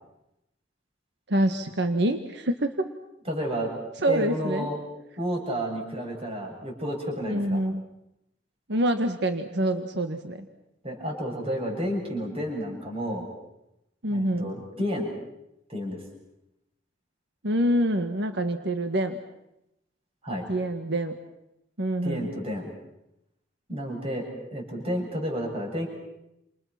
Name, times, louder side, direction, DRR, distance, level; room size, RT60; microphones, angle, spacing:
voice 1, 1.3-2.7 4.0-4.7 7.3-7.8 8.7-10.5 14.0-14.5 17.4-19.2 20.5-21.2 21.8-22.3, right 1 dB, 65° right, 7 dB, 1.7 m, -26 dB
voice 2, 3.3-3.7 4.0-4.8 5.2-7.6 10.8-13.3 14.1-15.1 15.7-16.0 20.2-20.5 22.0-22.7 23.7-24.3 24.5-25.9, equal, 35° right, 0 dB, 7.5 m, -31 dB
29.5 x 28.0 x 6.0 m, 0.86 s
head